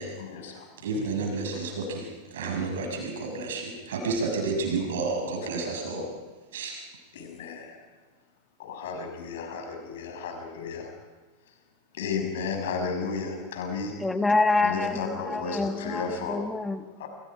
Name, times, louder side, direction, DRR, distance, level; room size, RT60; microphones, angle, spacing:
voice 1, 0.2-0.7 1.5-1.6 7.1-7.8 8.6-10.9 12.0-14.0 14.6-16.4 17.0-17.1, left 5 dB, 55° left, 4 dB, 6.4 m, -33 dB
voice 2, 0.8-6.1 6.5-6.8, right 3 dB, 60° right, 2 dB, 7.2 m, -30 dB
voice 3, 14.0-16.8, left 3 dB, 10° left, 9 dB, 1.6 m, -26 dB
29.0 x 26.5 x 5.1 m, 1.3 s
figure-of-eight pair, 90°, 0 cm